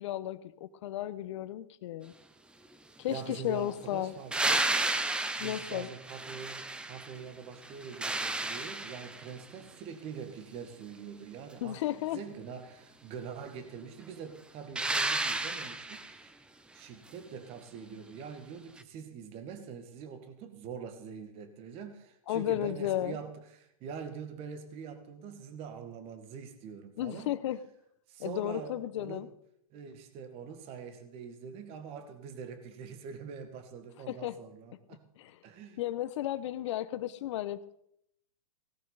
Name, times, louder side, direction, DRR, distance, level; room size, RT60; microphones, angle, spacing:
voice 1, 0.0-2.1 3.0-4.1 5.4-5.9 11.6-12.2 22.3-23.2 27.0-27.6 28.2-29.3 34.1-34.4 35.2-35.4 35.8-37.7, left 13 dB, 55° left, 14 dB, 1.0 m, -34 dB
voice 2, 3.1-4.7 5.4-16.3 16.7-27.3 28.1-29.3 29.7-35.1 35.4-35.8, right 6 dB, 30° right, 8 dB, 1.9 m, -44 dB
sound 1, 4.3-7.2 7.6-9.4 14.8-16.2 18.8-18.9, right 2 dB, 5° right, 0.6 m, -32 dB
18.0 x 12.0 x 4.1 m, 0.73 s
hypercardioid pair, 135°, 19 cm